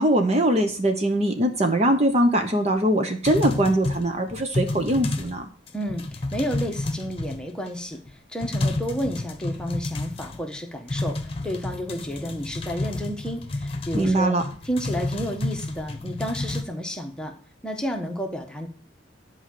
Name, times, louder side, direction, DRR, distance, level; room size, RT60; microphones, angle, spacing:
voice 1, 0.0-5.4 13.9-14.4, right 1 dB, 35° right, 5 dB, 1.0 m, -22 dB
sound 1, 3.2-5.4 5.7-7.7 8.1-8.2 8.4-10.6 10.9-16.6, left 2 dB, 30° left, 1.2 m, -30 dB
voice 2, 5.7-8.0 8.3-14.3 14.6-17.3 17.6-18.7, equal, 5° left, 2 dB, 1.3 m, -31 dB
11.0 x 4.9 x 7.7 m, 0.43 s
head